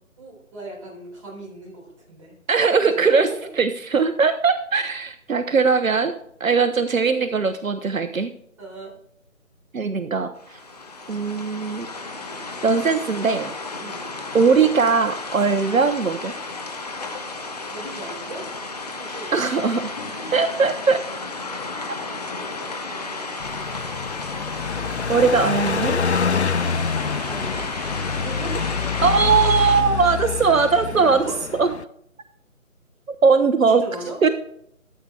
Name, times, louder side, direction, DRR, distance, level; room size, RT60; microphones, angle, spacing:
voice 1, 0.2-2.3 2.9-3.5 3.9-4.1 8.6-8.9 13.8-14.0 17.7-19.4 20.1-20.3 21.2-21.3 22.0-22.2 22.8-23.8 27.3-28.7 30.9-31.4 33.7-34.2, right 2 dB, 25° right, -4 dB, 4.1 m, -38 dB
voice 2, 2.5-3.3 3.6-6.1 6.4-8.3 9.7-10.6 11.1-11.9 12.6-13.5 14.3-16.3 19.3-21.0 21.8-21.9 25.1-26.0 29.0-31.2 31.5-31.7 33.2-33.8 34.2-34.3, right 5 dB, 75° right, 10 dB, 0.9 m, -20 dB
sound 1, 10.4-29.8, left 3 dB, 30° left, 1.1 m, -33 dB
Car passing by, 23.4-31.8, left 5 dB, 55° left, 0.4 m, -26 dB
13.5 x 7.6 x 3.5 m, 0.69 s
figure-of-eight pair, 165°, 41 cm